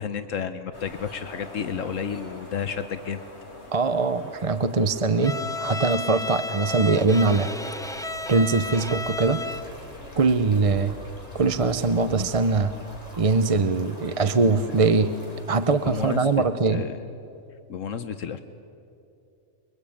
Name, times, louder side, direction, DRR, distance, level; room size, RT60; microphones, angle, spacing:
voice 1, 0.0-3.2 14.2-14.3 15.8-16.3 16.7-17.0 17.7-18.4, left 7 dB, 80° left, 9 dB, 1.3 m, -31 dB
sound 1, 0.7-15.4, left 1 dB, 55° left, 4.1 m, -45 dB
voice 2, 3.7-7.5 8.3-9.5 10.2-11.0 11.3-12.7 13.2-15.1 15.5-16.8, right 4 dB, 30° right, 11 dB, 0.7 m, -22 dB
Bowed string instrument, 5.2-9.8, left 2 dB, 5° left, 0.5 m, -33 dB
sound 2, 5.5-16.4, equal, 30° left, 4.4 m, -49 dB
30.0 x 22.5 x 8.7 m, 2.7 s
omnidirectional pair, 1.3 m